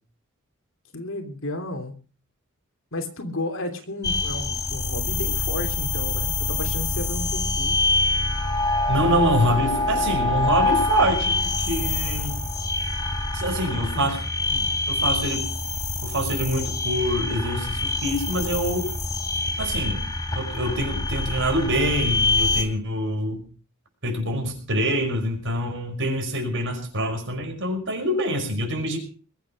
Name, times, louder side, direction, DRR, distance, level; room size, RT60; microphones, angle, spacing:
voice 1, 0.9-1.9 2.9-7.9 13.6-14.1, left 1 dB, 65° left, 6 dB, 3.1 m, -33 dB
sound 1, 4.0-22.6, left 2 dB, 20° left, 2.9 m, -25 dB
voice 2, 8.9-12.4 13.3-14.2 14.5-15.5 16.0-18.9 19.6-20.1 20.3-23.4 24.0-29.0, equal, 60° right, 4 dB, 5.4 m, -25 dB
22.0 x 8.5 x 6.5 m, 0.39 s
head